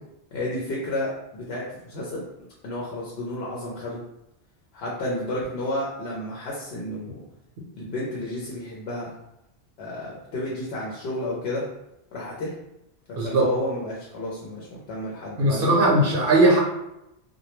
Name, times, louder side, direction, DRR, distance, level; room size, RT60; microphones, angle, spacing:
voice 1, 0.3-2.2 2.6-4.0 4.7-7.2 7.8-9.1 9.8-11.6 12.1-12.5 13.1-15.9, left 1 dB, 70° left, -4 dB, 0.8 m, -31 dB
voice 2, 15.4-16.6, right 2 dB, 60° right, -2 dB, 0.8 m, -19 dB
2.2 x 2.0 x 2.9 m, 0.87 s
omnidirectional pair, 1.1 m